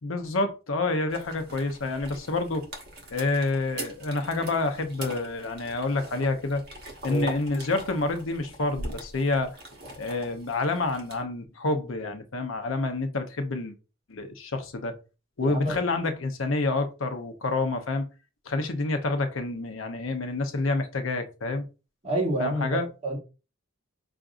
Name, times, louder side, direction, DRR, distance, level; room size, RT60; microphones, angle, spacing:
voice 1, 0.0-2.6 3.1-6.6 7.0-9.6 10.0-13.7 14.1-14.9 15.4-18.0 18.5-21.6 22.4-22.9, left 3 dB, 80° left, 0.7 m, -28 dB
sound 1, 1.1-11.2, right 1 dB, 55° right, 1.1 m, -42 dB
voice 2, 15.4-15.8 22.0-23.2, right 1 dB, 30° right, 1.3 m, -28 dB
5.7 x 2.5 x 2.5 m
head